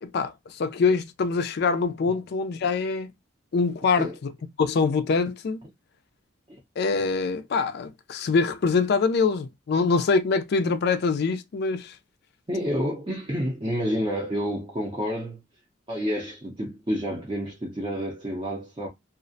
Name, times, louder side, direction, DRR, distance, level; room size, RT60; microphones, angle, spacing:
voice 1, 0.0-3.1 3.5-4.3 4.6-5.6 6.8-11.9, left 4 dB, 55° left, 0.4 m, -24 dB
voice 2, 12.5-15.4 15.9-18.9, equal, 25° right, 0.5 m, -29 dB
2.4 x 2.0 x 2.5 m
head